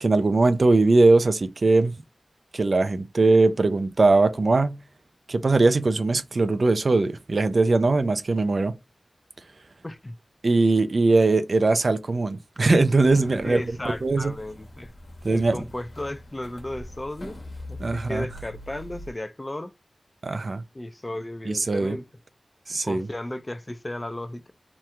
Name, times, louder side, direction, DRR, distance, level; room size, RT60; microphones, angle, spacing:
voice 1, 0.0-1.9 2.5-4.8 5.3-8.7 10.4-13.6 14.0-14.3 15.2-15.6 17.8-18.3 20.2-20.6 21.5-22.0 22.7-23.1, right 3 dB, 65° right, 0.4 m, -20 dB
voice 2, 9.8-10.2 13.4-14.9 15.3-17.4 17.7-19.7 20.7-22.0 22.8-24.5, left 1 dB, 30° left, 0.4 m, -34 dB
sound 1, 12.6-19.1, left 1 dB, 80° left, 1.2 m, -42 dB
2.9 x 2.3 x 3.2 m
cardioid pair, 45°, 0 cm